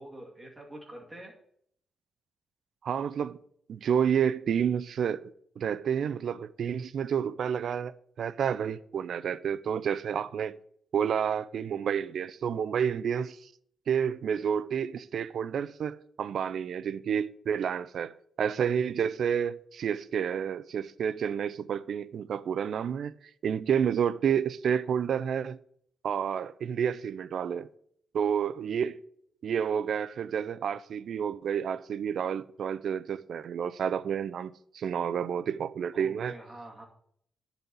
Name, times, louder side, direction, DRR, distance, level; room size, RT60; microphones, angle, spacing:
voice 1, 0.0-1.3 35.9-36.8, right 1 dB, 10° right, 2.1 m, -46 dB
voice 2, 2.8-3.4 3.7-10.6 10.9-13.4 13.9-23.2 23.4-25.6 26.0-27.7 28.1-29.0 29.4-36.4, right 8 dB, 60° right, 0.4 m, -30 dB
11.0 x 4.1 x 6.9 m
wide cardioid pair, 145°, 0 cm